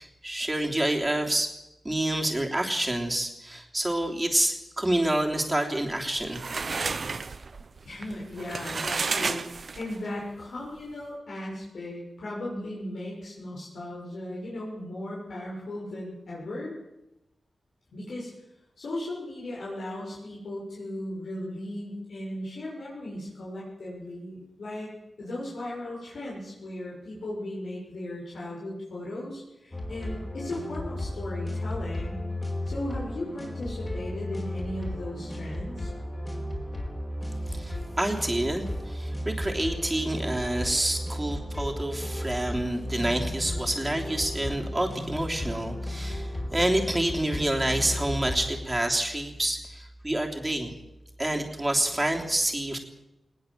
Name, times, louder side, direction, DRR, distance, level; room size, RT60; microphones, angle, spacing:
voice 1, 0.0-1.5 1.8-6.4 37.5-50.7 51.2-52.8, right 1 dB, 15° right, 1 dB, 3.3 m, -28 dB
sound 1, 5.9-10.1, right 4 dB, 50° right, 1.0 m, -32 dB
voice 2, 7.8-16.7 17.9-18.3 18.8-32.3 32.7-35.9, left 1 dB, 80° left, -5 dB, 6.7 m, -37 dB
sound 2, 29.7-48.6, left 1 dB, 25° left, 4.6 m, -34 dB
20.0 x 19.5 x 7.5 m, 0.92 s
wide cardioid pair, 130°, 0 cm